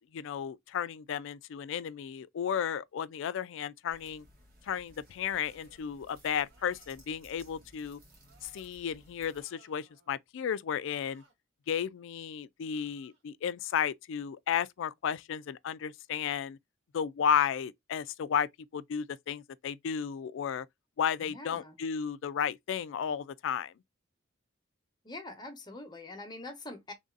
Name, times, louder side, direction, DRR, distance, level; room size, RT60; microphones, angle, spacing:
voice 1, 0.1-4.3 4.6-8.0 8.4-11.2 11.7-16.6 16.9-20.7 21.0-23.7, left 8 dB, 65° left, 0.3 m, -33 dB
sound 1, 3.9-9.4, right 1 dB, 50° right, 1.7 m, -59 dB
sound 2, 5.4-5.9 6.4-7.1 8.2-8.7 9.3-10.1 10.8-11.3 12.7-13.2, right 3 dB, 65° right, 2.1 m, -64 dB
voice 2, 21.3-21.8 25.0-26.9, left 2 dB, 20° left, 1.0 m, -44 dB
3.3 x 2.5 x 3.8 m
head